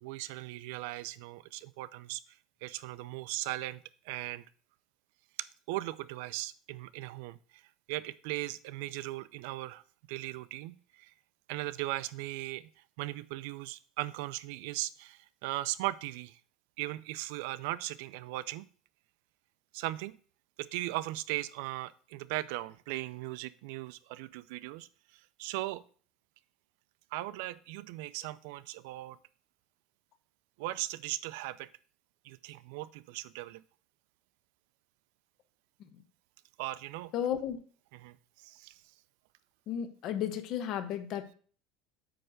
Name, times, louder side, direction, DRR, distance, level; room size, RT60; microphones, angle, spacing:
voice 1, 0.0-4.4 5.4-7.6 7.9-9.8 10.1-11.1 11.5-12.7 13.0-16.4 16.8-18.7 19.7-20.2 20.6-25.8 27.1-29.2 30.6-31.7 32.2-33.6 36.6-37.1 38.0-38.8, right 17 dB, 80° right, 17 dB, 0.4 m, -38 dB
voice 2, 37.1-37.6 39.7-41.3, left 9 dB, 50° left, 10 dB, 1.0 m, -34 dB
8.9 x 3.3 x 6.4 m, 0.43 s
cardioid pair, 150°, 0 cm